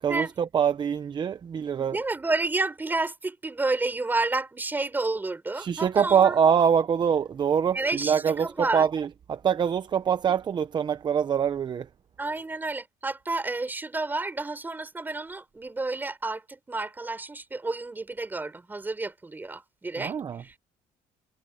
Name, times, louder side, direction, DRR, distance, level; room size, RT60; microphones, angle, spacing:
voice 1, 0.0-2.0 5.6-11.9 20.0-20.4, right 7 dB, 30° right, 0.7 m, -24 dB
voice 2, 1.8-6.4 7.7-8.9 12.2-20.5, right 3 dB, 15° right, 4.8 m, -30 dB
cardioid pair, 140°, 14 cm